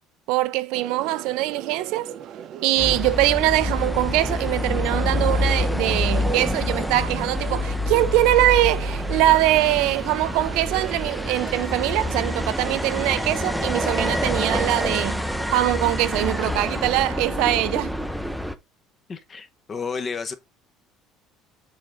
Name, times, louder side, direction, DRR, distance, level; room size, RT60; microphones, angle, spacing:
voice 1, 0.3-2.1 2.6-15.2 15.5-17.9, right 16 dB, 75° right, 0.5 m, -22 dB
sound 1, 0.7-15.7, right 9 dB, 50° right, 0.8 m, -39 dB
sound 2, 2.8-18.6, left 1 dB, ahead, 0.6 m, -27 dB
voice 2, 19.1-20.3, left 5 dB, 25° left, 0.9 m, -31 dB
7.0 x 3.8 x 4.9 m
cardioid pair, 145°, 0 cm